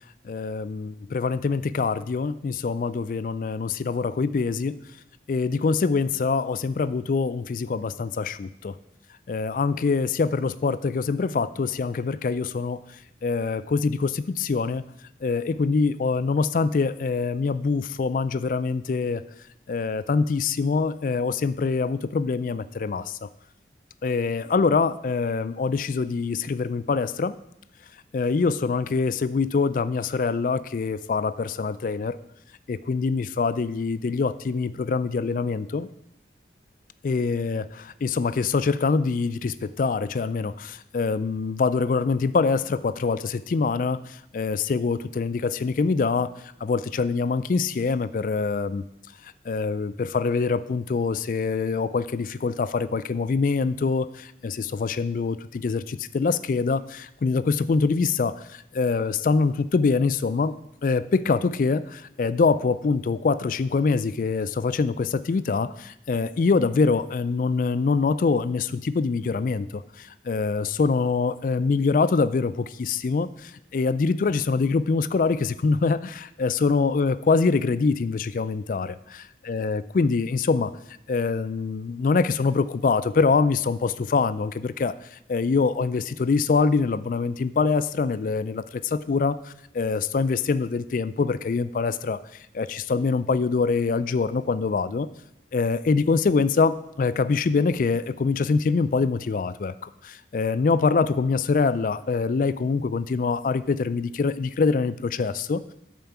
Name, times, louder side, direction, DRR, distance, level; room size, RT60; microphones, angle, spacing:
voice 1, 0.2-4.8 5.3-8.7 9.3-12.8 13.2-14.8 15.2-19.2 19.7-23.3 24.0-27.3 28.1-32.2 32.7-35.9 37.0-46.3 46.6-48.8 49.5-60.5 60.8-80.7 81.1-92.2 92.5-95.1 95.5-105.6, left 4 dB, 50° left, 14 dB, 0.3 m, -24 dB
9.3 x 4.5 x 6.9 m, 0.81 s
head